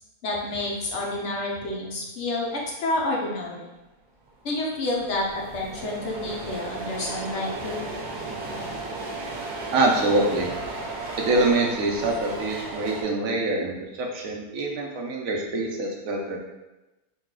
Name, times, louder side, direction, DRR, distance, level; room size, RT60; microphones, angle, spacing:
voice 1, 0.2-3.7 4.4-7.8, left 2 dB, 60° left, -2 dB, 0.9 m, -29 dB
sound 1, 4.3-4.4 4.5-13.0, right 2 dB, 55° right, 0.5 m, -35 dB
voice 2, 9.7-10.5 11.3-13.7 14.0-16.4, right 2 dB, 70° right, 0 dB, 1.1 m, -24 dB
3.9 x 2.3 x 3.7 m, 1.0 s
omnidirectional pair, 1.5 m